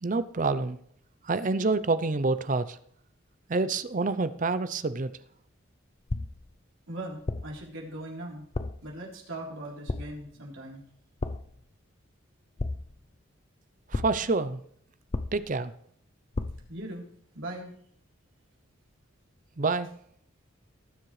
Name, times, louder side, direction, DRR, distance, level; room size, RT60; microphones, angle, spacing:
voice 1, 0.0-0.8 1.2-2.8 3.5-5.1 13.9-14.6 15.3-15.7 19.6-19.9, right 3 dB, 40° right, 14 dB, 0.6 m, -27 dB
sound 1, 6.1-6.6 7.3-7.7 8.5-8.9 9.9-10.3 11.2-11.6 12.6-13.1 13.9-14.4 15.1-15.7 16.3-16.8, left 2 dB, 30° left, 0.5 m, -34 dB
voice 2, 6.9-8.4 8.8-10.8 16.7-17.1 17.3-17.7, right 1 dB, 70° right, -2 dB, 3.7 m, -39 dB
18.5 x 7.4 x 3.3 m, 0.65 s
head